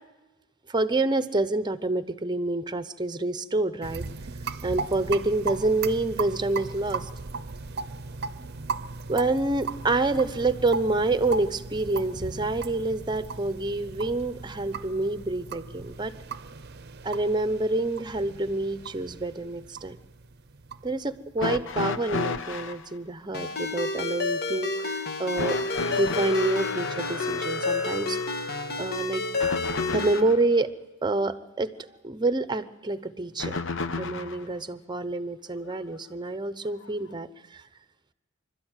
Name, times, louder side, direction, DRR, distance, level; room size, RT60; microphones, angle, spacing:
voice 1, 0.7-4.1 4.6-7.1 9.1-16.1 17.0-20.0 20.8-25.6 26.0-28.2 28.8-29.2 29.9-30.7 31.0-31.7 32.0-33.6 34.0-37.6, right 2 dB, 20° right, 12 dB, 0.9 m, -27 dB
sound 1, 3.8-23.1, right 4 dB, 50° right, 0.7 m, -37 dB
sound 2, 21.4-22.8 25.4-30.5 33.4-34.5 35.7-35.8 36.8-36.9, left 3 dB, 65° left, 0.9 m, -32 dB
Ringtone, 23.3-30.2, left 3 dB, 50° left, 1.6 m, -30 dB
26.0 x 13.0 x 9.1 m, 1.1 s
head